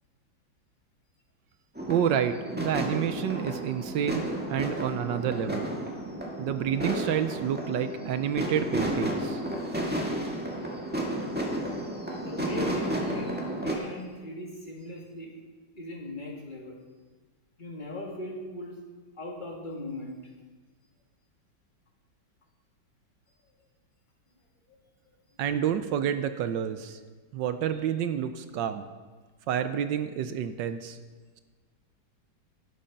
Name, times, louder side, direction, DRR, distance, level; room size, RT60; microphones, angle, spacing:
sound 1, 1.8-13.7, right 1 dB, 5° right, 1.6 m, -32 dB
voice 1, 1.9-5.7 6.4-9.4 25.4-27.0 27.3-28.9 29.5-31.0, right 9 dB, 75° right, 10 dB, 1.3 m, -29 dB
voice 2, 12.2-15.3 15.7-16.8 17.6-18.7 19.2-20.2, left 1 dB, 25° left, -1 dB, 2.2 m, -39 dB
12.0 x 11.5 x 5.3 m, 1.4 s
omnidirectional pair, 2.1 m